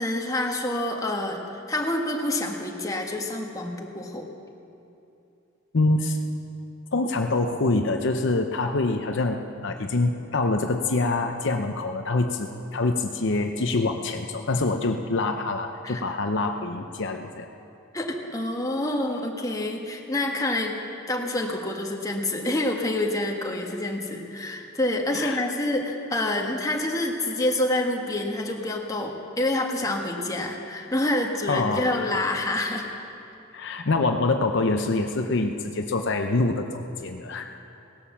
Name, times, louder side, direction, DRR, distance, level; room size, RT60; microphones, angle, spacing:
voice 1, 0.0-1.4 1.7-4.3 15.8-16.0 17.9-20.8 21.1-32.9, left 1 dB, 15° left, 1 dB, 1.5 m, -27 dB
voice 2, 5.7-6.2 6.9-17.5 25.1-25.4 31.5-32.1 33.5-37.7, left 2 dB, 60° left, 5 dB, 0.7 m, -25 dB
17.5 x 11.5 x 7.3 m, 2.7 s
head